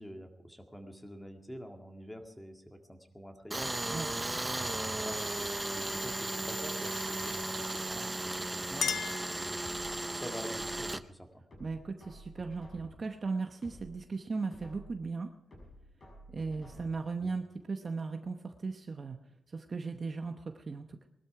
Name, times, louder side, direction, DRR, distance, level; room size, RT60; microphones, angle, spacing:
voice 1, 0.0-3.7 4.5-9.6 10.1-11.4 17.2-17.4, equal, 5° left, 4 dB, 2.0 m, -47 dB
Tools, 3.5-11.0, right 2 dB, 15° right, 0.6 m, -35 dB
Chink clink, 8.2-10.1, left 7 dB, 75° left, 0.7 m, -37 dB
sound 1, 9.6-11.0 11.5-13.1 13.5-15.0 15.5-17.1 17.5-17.6, equal, 40° left, 6.3 m, -52 dB
voice 2, 11.6-15.3 16.3-19.2 19.5-21.1, right 4 dB, 40° right, 5 dB, 0.9 m, -37 dB
20.0 x 12.5 x 4.8 m, 0.91 s
wide cardioid pair, 125°, 0 cm